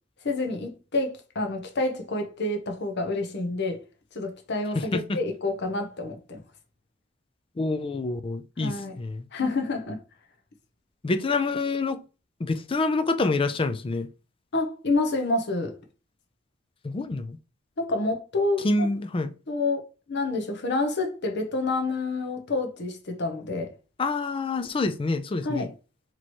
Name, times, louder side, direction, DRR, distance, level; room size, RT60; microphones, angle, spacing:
voice 1, 0.2-3.8 4.1-6.4 8.6-9.0 9.3-10.0 14.5-15.8 17.8-18.9 19.5-19.8 20.1-23.7 25.4-25.7, left 2 dB, 60° left, 0.8 m, -28 dB
voice 2, 7.6-9.3 11.0-12.0 12.4-14.1 16.8-17.4 18.6-19.3 24.0-25.7, left 3 dB, 25° left, 0.4 m, -27 dB
3.1 x 3.0 x 4.2 m
head